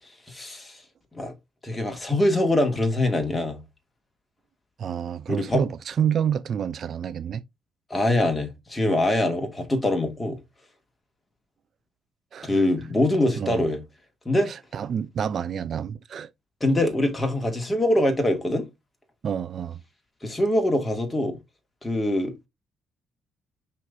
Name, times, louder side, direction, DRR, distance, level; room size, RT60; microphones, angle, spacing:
voice 1, 0.3-0.8 1.1-1.3 1.6-3.6 5.3-5.6 7.9-10.4 12.4-13.8 14.3-14.5 16.6-18.7 20.2-21.4 21.8-22.5, left 1 dB, 15° left, 2.2 m, -23 dB
voice 2, 4.8-7.4 12.3-12.6 13.4-13.6 14.5-16.3 19.2-19.8, right 8 dB, 55° right, 0.5 m, -28 dB
6.1 x 5.6 x 2.7 m
cardioid pair, 90°, 0 cm